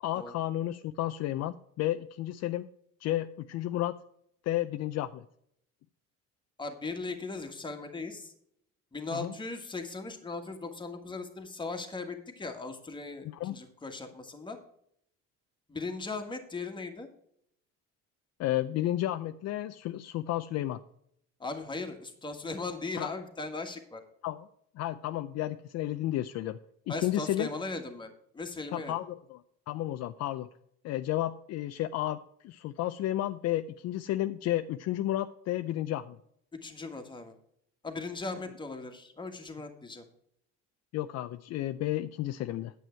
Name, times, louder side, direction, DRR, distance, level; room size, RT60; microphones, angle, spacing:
voice 1, 0.0-2.7 3.0-4.0 4.4-5.2 9.1-9.3 13.2-13.6 18.4-20.8 23.0-23.1 24.2-24.5 24.7-26.6 26.9-27.5 28.7-29.4 29.7-30.5 30.8-32.2 32.4-36.2 40.9-42.7, left 14 dB, 60° left, 11 dB, 0.5 m, -32 dB
voice 2, 6.6-8.3 8.9-14.6 15.7-17.1 21.4-24.0 26.9-28.9 36.6-37.3 37.8-40.1, left 3 dB, 15° left, 5 dB, 1.6 m, -38 dB
9.3 x 7.9 x 4.5 m, 0.71 s
cardioid pair, 130°, 29 cm